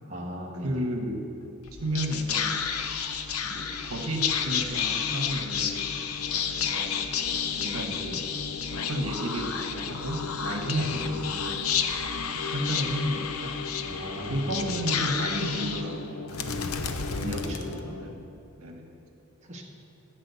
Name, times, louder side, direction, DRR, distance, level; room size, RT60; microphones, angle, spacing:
voice 1, 0.1-0.9 7.9-8.1 10.7-10.9 13.9-14.5 17.3-17.7 19.5-19.6, equal, 35° right, -2 dB, 1.3 m, -38 dB
voice 2, 0.6-1.3 1.8-2.6 3.4-5.9 6.6-7.1 7.6-8.2 8.7-11.6 12.3-13.6 14.2-16.0 16.4-16.8 17.1-18.1 18.6-18.9, right 1 dB, 75° right, 3 dB, 1.3 m, -32 dB
Whispering, 1.6-18.2, left 6 dB, 80° left, 0.7 m, -31 dB
13.5 x 6.4 x 8.3 m, 2.7 s
head